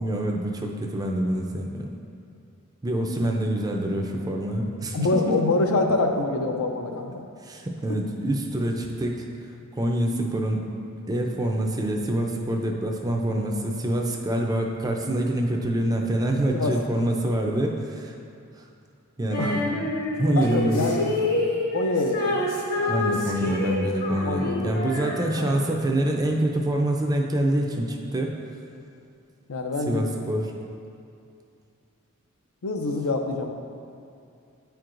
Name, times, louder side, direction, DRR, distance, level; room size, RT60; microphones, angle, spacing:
voice 1, 0.0-1.9 2.8-5.3 7.4-9.3 9.7-10.7 11.1-18.1 19.2-19.9 20.2-20.9 22.9-28.3 29.9-30.5, right 1 dB, 15° right, 1 dB, 0.4 m, -26 dB
voice 2, 4.9-7.3 16.5-16.7 19.4-19.5 20.3-21.2 21.7-22.4 22.8-23.8 24.3-25.1 25.4-25.5 29.5-30.2 32.6-33.5, left 3 dB, 75° left, 4 dB, 0.5 m, -26 dB
Female singing, 19.3-25.8, left 2 dB, 45° left, 0.9 m, -28 dB
9.1 x 4.5 x 2.5 m, 2.5 s
head